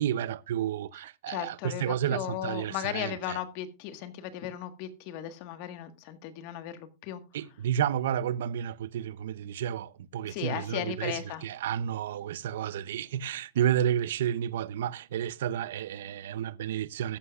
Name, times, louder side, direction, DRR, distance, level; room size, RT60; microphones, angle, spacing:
voice 1, 0.0-3.4 7.3-17.2, right 10 dB, 80° right, 0.6 m, -31 dB
voice 2, 1.3-7.2 10.2-11.4, left 11 dB, 50° left, 1.6 m, -36 dB
14.0 x 11.0 x 2.4 m
supercardioid pair, 155°, 0 cm